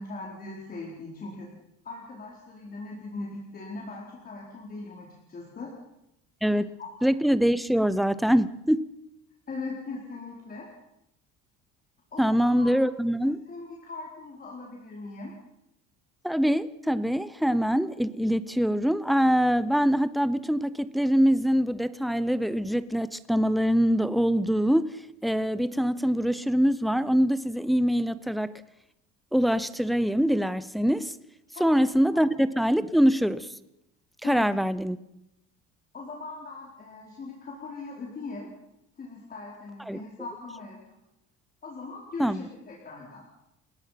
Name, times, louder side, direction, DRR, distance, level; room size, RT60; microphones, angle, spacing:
voice 1, 0.0-1.5 1.8-5.7 6.8-7.1 9.5-10.7 12.1-12.8 13.2-15.3 31.5-31.7 32.1-32.2 34.2-34.5 35.9-38.5 39.0-40.8 41.6-43.2, left 3 dB, 30° left, 4.4 m, -40 dB
voice 2, 7.0-8.8 12.2-13.4 16.2-25.0 25.2-28.5 29.3-31.1 31.6-33.5 34.2-35.0 39.9-40.0 42.2-42.5, equal, ahead, 0.7 m, -24 dB
30.0 x 17.0 x 5.9 m
cardioid pair, 155°, 31 cm